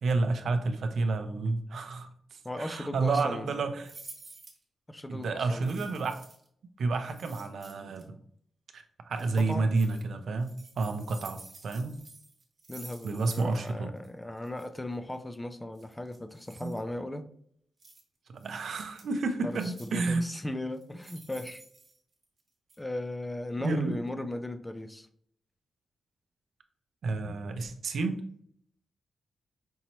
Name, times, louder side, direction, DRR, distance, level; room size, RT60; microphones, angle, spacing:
voice 1, 0.0-4.0 5.1-6.2 6.8-8.2 8.7-12.0 13.0-13.9 16.6-16.7 18.3-20.4 23.6-24.0 27.0-28.2, right 3 dB, 65° right, 8 dB, 0.5 m, -30 dB
voice 2, 2.4-3.6 4.9-5.9 9.2-9.7 12.7-17.2 19.4-21.6 22.8-25.1, left 1 dB, 10° left, 9 dB, 0.3 m, -37 dB
sound 1, 3.8-4.6 5.6-6.5 7.0-8.0 9.1-10.0 10.4-13.7 14.0-14.1 14.4-14.7 15.7-16.8 17.8-18.0 18.4-19.1 19.5-20.1 20.7-22.4 22.7-22.8, right 3 dB, 35° right, 1.0 m, -51 dB
5.3 x 2.9 x 2.9 m, 0.63 s
wide cardioid pair, 140°, 0 cm